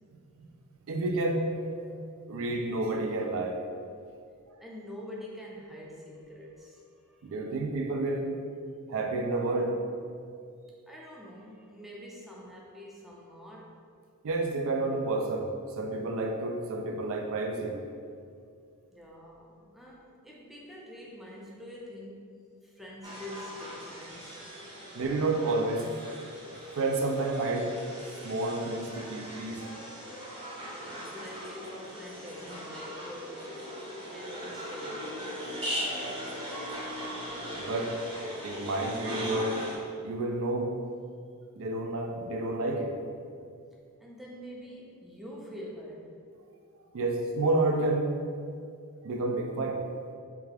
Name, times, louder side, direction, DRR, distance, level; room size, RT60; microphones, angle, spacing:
voice 1, 0.9-1.7 2.3-3.6 7.2-8.3 8.9-9.8 14.2-17.8 25.0-25.9 26.8-27.7 28.2-29.6 37.6-38.0 38.4-39.7 40.0-40.8 41.6-43.0 46.9-48.1 49.0-49.8, right 2 dB, 65° right, 3 dB, 0.4 m, -30 dB
voice 2, 4.6-7.4 10.9-13.8 18.9-24.4 30.6-35.1 44.0-46.1, left 1 dB, ahead, -4 dB, 0.4 m, -45 dB
sound 1, 23.0-39.8, equal, 20° right, 0.8 m, -39 dB
3.3 x 2.3 x 3.3 m, 2.3 s
head